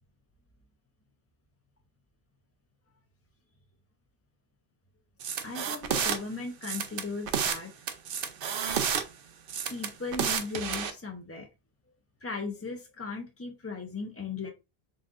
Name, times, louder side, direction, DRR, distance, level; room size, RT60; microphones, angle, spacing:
sound 1, 5.2-6.2 6.6-7.6 7.9-9.0 9.5-10.9, right 7 dB, 65° right, 0.8 m, -30 dB
voice 1, 5.4-7.7 9.7-11.5 12.2-14.5, left 4 dB, 25° left, 3 dB, 0.3 m, -37 dB
4.1 x 3.7 x 2.4 m, 0.27 s
omnidirectional pair, 1.0 m